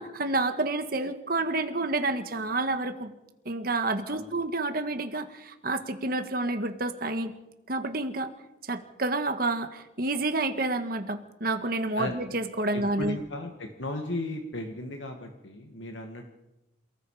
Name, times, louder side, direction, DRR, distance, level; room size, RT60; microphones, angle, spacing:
voice 1, 0.0-3.1 3.4-7.3 7.7-8.3 8.7-13.2, right 2 dB, 50° right, 7 dB, 1.7 m, -29 dB
voice 2, 12.7-16.3, left 2 dB, 80° left, 3 dB, 2.1 m, -36 dB
28.0 x 18.5 x 5.0 m, 0.94 s
head